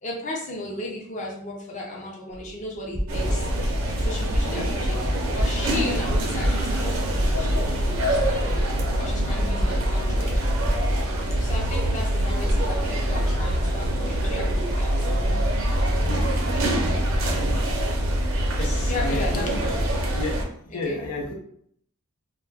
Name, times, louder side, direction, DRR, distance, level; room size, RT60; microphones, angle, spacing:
voice 1, 0.0-3.5 4.0-5.1 5.3-8.4 9.0-10.3 11.4-14.9 18.8-20.0 20.7-21.0, left 1 dB, 35° left, -2 dB, 0.5 m, -35 dB
sound 1, 2.3-2.5 2.8-3.7 4.0-4.6 5.0-5.7 6.1-6.9 7.1-7.8 8.2-9.0 9.3-10.8, equal, 10° right, 0.4 m, -29 dB
sound 2, 3.1-20.4, right 1 dB, 60° right, 0.5 m, -24 dB
voice 2, 18.6-19.8 20.1-20.4 20.7-21.3, left 2 dB, 90° left, 1 dB, 0.6 m, -30 dB
2.2 x 2.1 x 3.3 m, 0.66 s
head